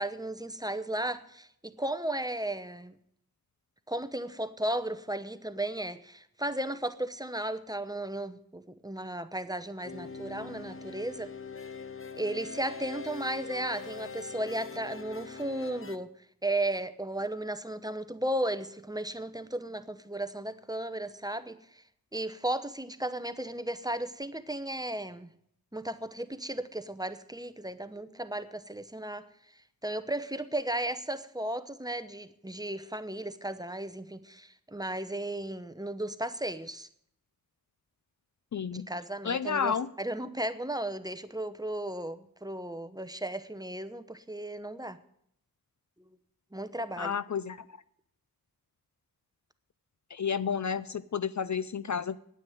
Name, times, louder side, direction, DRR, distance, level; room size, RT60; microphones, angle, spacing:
voice 1, 0.0-3.0 3.9-11.3 12.1-16.1 16.4-21.8 22.1-25.3 25.7-29.3 29.8-36.9 38.7-45.0 46.5-47.1, right 1 dB, 10° right, 11 dB, 0.9 m, -35 dB
sound 1, 9.8-16.0, left 4 dB, 35° left, 0.9 m, -42 dB
voice 2, 38.5-38.9 39.2-39.9 47.0-47.6 50.1-52.2, left 7 dB, 50° left, 16 dB, 0.5 m, -31 dB
9.6 x 9.4 x 8.8 m, 0.70 s
wide cardioid pair, 80°, 36 cm